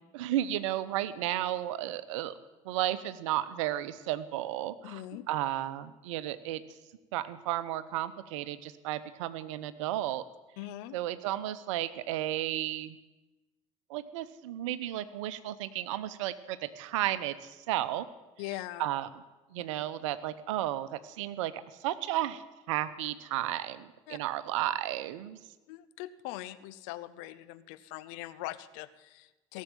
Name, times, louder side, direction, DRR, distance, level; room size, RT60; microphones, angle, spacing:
voice 1, 0.1-2.3 2.6-5.0 5.3-6.6 7.1-10.2 10.9-13.0 13.9-18.1 18.8-19.1 19.5-25.4, right 13 dB, 75° right, 15 dB, 0.8 m, -33 dB
voice 2, 4.8-5.3 10.6-11.0 18.4-18.9 24.1-24.2 25.7-29.6, left 15 dB, 70° left, 15 dB, 0.8 m, -41 dB
17.0 x 7.4 x 9.1 m, 1.1 s
hypercardioid pair, 65°, 16 cm